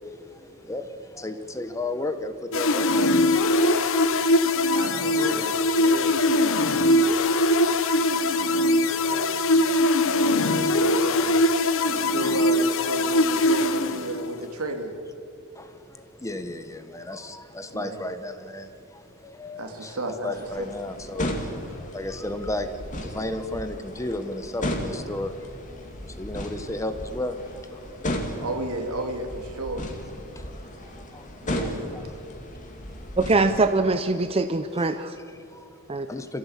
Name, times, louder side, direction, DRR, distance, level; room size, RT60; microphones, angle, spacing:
voice 1, 0.0-4.5 4.9-5.5 6.9-10.4 12.0-12.3 15.5-20.0 20.2-27.4 27.7-28.0 30.3-32.0 34.8-35.0 35.3-36.4, left 1 dB, 15° left, 1.2 m, -35 dB
sound 1, 2.5-14.4, left 1 dB, 65° left, 1.0 m, -21 dB
voice 2, 4.7-6.2 10.2-11.4 11.8-14.9 17.7-18.0 19.5-20.3 28.4-29.9 31.4-32.0 33.3-33.5, right 1 dB, 85° right, 2.9 m, -33 dB
sound 2, 20.3-33.8, left 1 dB, 35° left, 2.6 m, -35 dB
voice 3, 33.2-35.1 35.9-36.1, right 3 dB, 25° right, 0.7 m, -23 dB
27.5 x 15.5 x 8.4 m
head